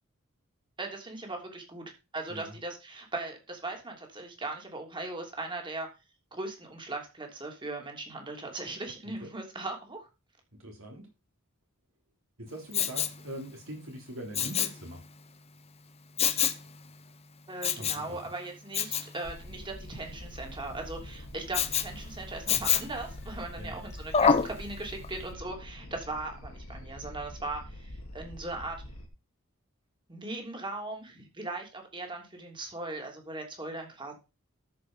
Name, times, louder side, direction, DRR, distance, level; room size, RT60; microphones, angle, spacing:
voice 1, 0.8-1.8 2.1-5.9 6.3-10.1 17.5-28.8 30.1-34.1, right 2 dB, 25° right, 2 dB, 3.1 m, -39 dB
voice 2, 10.6-11.1 12.4-15.0 17.8-18.2 23.6-23.8, right 1 dB, 70° right, 1 dB, 3.7 m, -42 dB
Respiratory sounds, 12.7-13.2 14.3-14.8 16.2-16.6 17.6-18.1 18.7-19.1 21.5-21.9 22.5-23.0 24.1-24.5 25.0-25.1, left 7 dB, 30° left, 0.9 m, -26 dB
sound 1, 19.2-29.1, left 1 dB, 75° left, 2.4 m, -45 dB
13.5 x 5.4 x 5.6 m, 0.29 s
head